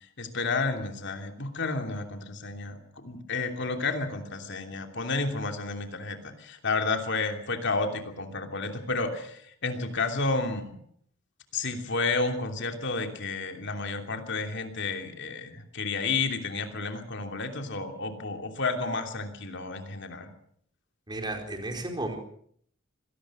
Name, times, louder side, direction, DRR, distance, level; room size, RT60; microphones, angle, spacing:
voice 1, 0.2-10.8 11.5-20.3, left 3 dB, 60° left, 5 dB, 3.0 m, -31 dB
voice 2, 21.1-22.2, right 2 dB, 20° right, 4 dB, 4.3 m, -33 dB
25.0 x 18.5 x 6.3 m, 0.64 s
head